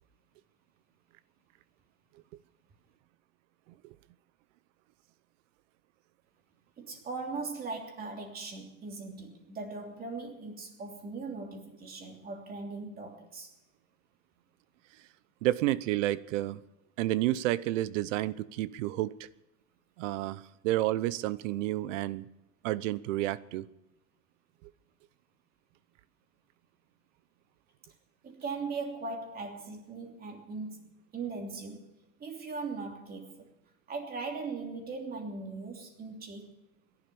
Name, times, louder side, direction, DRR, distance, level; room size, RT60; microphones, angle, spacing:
voice 1, 6.8-13.5 28.2-31.9 32.2-33.5 33.9-36.5, right 4 dB, 25° right, 3.0 m, -39 dB
voice 2, 15.4-16.6 17.0-19.3 20.0-22.3 22.6-23.7 24.6-24.7, right 15 dB, 80° right, 0.8 m, -30 dB
17.0 x 11.5 x 7.0 m
supercardioid pair, 145°, 37 cm